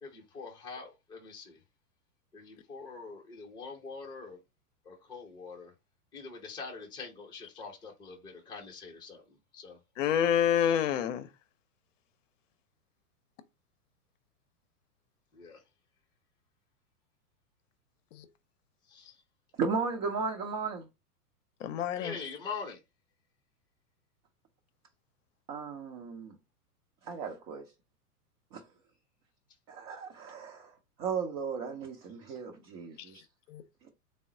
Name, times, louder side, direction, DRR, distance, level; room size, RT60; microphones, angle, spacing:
voice 1, 0.0-1.6 2.3-4.4 4.8-5.7 6.1-9.8 15.3-15.6 18.9-19.2 21.9-22.8, left 4 dB, 10° left, 0.7 m, -44 dB
voice 2, 10.0-11.3 18.1-18.3 21.6-22.1 33.5-33.6, left 9 dB, 55° left, 0.7 m, -27 dB
voice 3, 19.6-20.9 25.5-26.4 27.0-27.7 28.5-28.6 29.7-30.7 31.0-33.2, right 5 dB, 30° right, 0.6 m, -35 dB
3.7 x 2.0 x 3.7 m
figure-of-eight pair, 105°, 46 cm